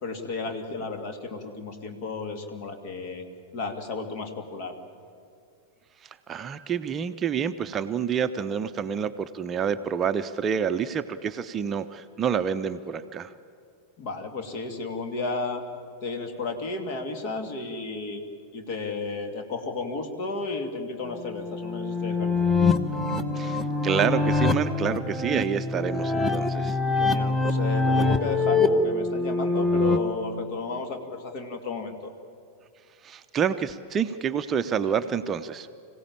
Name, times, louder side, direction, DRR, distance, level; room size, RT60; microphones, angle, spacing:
voice 1, 0.0-3.3 3.5-4.7 14.0-15.6 16.0-18.2 18.5-22.5 26.9-32.1, left 3 dB, 45° left, 6 dB, 2.4 m, -33 dB
voice 2, 6.3-13.3 23.3-26.8 33.0-35.7, right 7 dB, 25° right, 10 dB, 0.6 m, -28 dB
sound 1, 21.1-30.0, left 3 dB, 5° left, 1.2 m, -24 dB
26.0 x 16.5 x 8.7 m, 2.3 s
figure-of-eight pair, 90°, 0 cm